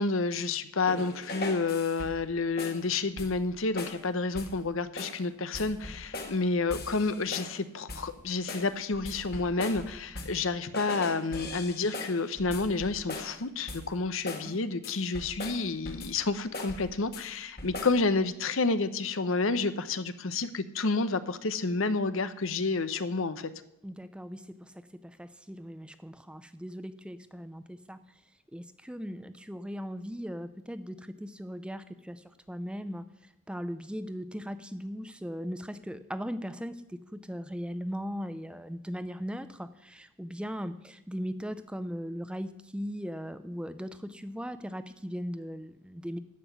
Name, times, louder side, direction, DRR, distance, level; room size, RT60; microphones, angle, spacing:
voice 1, 0.0-23.5, left 3 dB, 70° left, 12 dB, 0.8 m, -30 dB
sound 1, 0.9-2.3 2.6-2.9 3.2-3.5 3.8-4.0 4.4-4.6 5.0-5.2 5.5-6.4 6.7-7.6 7.9-8.2 8.5-10.5 10.7-13.4 13.7-14.0 14.3-14.5 14.8-16.2 16.5-17.3 17.6-18.0, left 2 dB, 45° left, 1.7 m, -40 dB
voice 2, 23.8-24.7 25.0-28.0 28.5-46.2, equal, 5° right, 11 dB, 0.5 m, -38 dB
14.0 x 5.9 x 9.4 m, 0.79 s
head